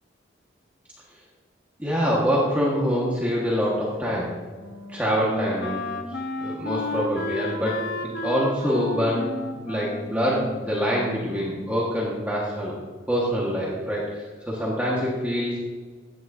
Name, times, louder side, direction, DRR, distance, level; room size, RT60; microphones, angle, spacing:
voice 1, 1.8-4.3 4.9-5.8 6.4-9.3 9.6-12.8 13.1-15.6, equal, 10° right, -6 dB, 1.5 m, -25 dB
Wind instrument woodwind instrument, 4.0-11.8, left 3 dB, 60° left, 1.1 m, -33 dB
15.5 x 9.4 x 2.7 m, 1.5 s
head